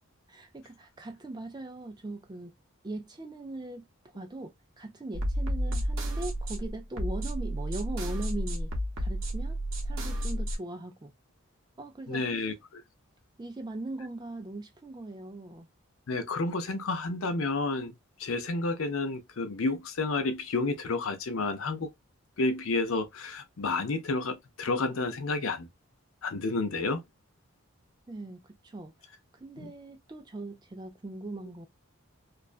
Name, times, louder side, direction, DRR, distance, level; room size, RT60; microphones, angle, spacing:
voice 1, 0.3-2.5 2.8-3.8 4.1-4.5 4.8-8.7 9.0-11.1 11.8-12.2 13.4-15.7 28.1-28.9 29.4-31.7, right 2 dB, 20° right, 0.4 m, -40 dB
sound 1, 5.1-10.6, equal, 65° right, 0.8 m, -31 dB
voice 2, 12.1-12.8 16.1-17.9 18.2-21.9 22.4-25.7 26.2-27.0 29.6-29.7, left 3 dB, 75° left, 0.6 m, -30 dB
2.4 x 2.1 x 2.4 m
head